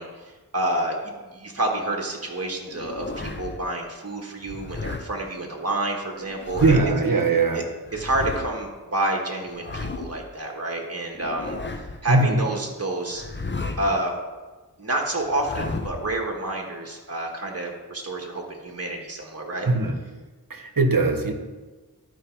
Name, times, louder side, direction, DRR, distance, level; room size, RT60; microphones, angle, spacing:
voice 1, 0.0-6.8 7.5-7.6 7.9-13.2 13.8-14.1 14.8-19.7, right 1 dB, 40° right, 0 dB, 1.3 m, -29 dB
sound 1, 2.7-3.6 4.4-5.1 6.2-7.1 7.9-8.5 9.4-10.3 11.1-12.1 13.1-14.0 15.2-16.1, left 3 dB, 30° left, 0.7 m, -33 dB
voice 2, 6.6-7.6 12.1-12.3 19.7-19.9 20.5-21.3, right 3 dB, 60° right, 5 dB, 1.1 m, -20 dB
12.0 x 4.7 x 4.6 m, 1.3 s
wide cardioid pair, 50°, 37 cm